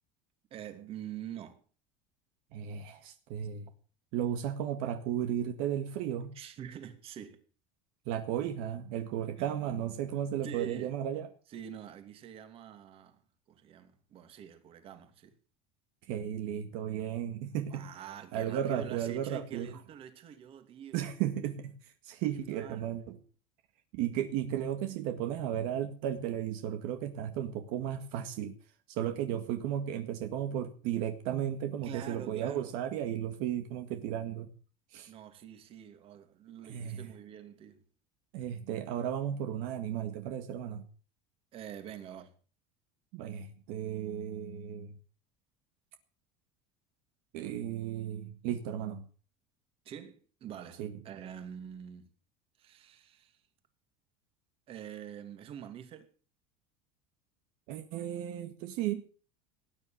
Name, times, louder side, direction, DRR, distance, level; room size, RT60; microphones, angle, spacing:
voice 1, 0.5-1.6 6.3-7.4 9.4-9.5 10.4-11.0 11.5-13.2 13.5-15.3 17.7-21.0 22.3-22.9 31.3-31.4 31.8-32.7 35.1-37.8 41.5-42.3 49.8-52.0 52.6-53.4 54.7-56.1, right 9 dB, 35° right, 2.6 m, -46 dB
voice 2, 2.5-3.7 4.1-6.4 8.1-11.3 16.1-17.9 18.3-19.7 20.9-21.8 22.0-23.2 23.9-28.5 28.9-34.5 34.9-35.1 36.7-37.1 38.3-40.8 43.1-44.9 47.3-49.1 50.8-50.9 57.7-59.0, right 10 dB, 60° right, 1.9 m, -34 dB
18.5 x 9.9 x 7.5 m
cardioid pair, 160°, 16 cm